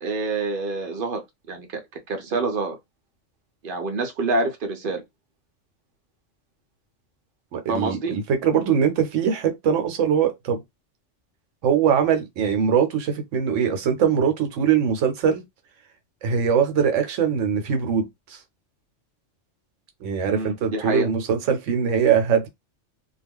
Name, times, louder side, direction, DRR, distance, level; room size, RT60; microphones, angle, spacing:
voice 1, 0.0-1.8 2.1-2.8 3.6-5.0 7.7-8.2 20.3-21.1, right 3 dB, 55° right, 0.7 m, -27 dB
voice 2, 7.5-10.6 11.6-15.4 16.2-18.1 20.0-22.5, right 7 dB, 80° right, 1.0 m, -22 dB
2.3 x 2.1 x 3.4 m
omnidirectional pair, 1.3 m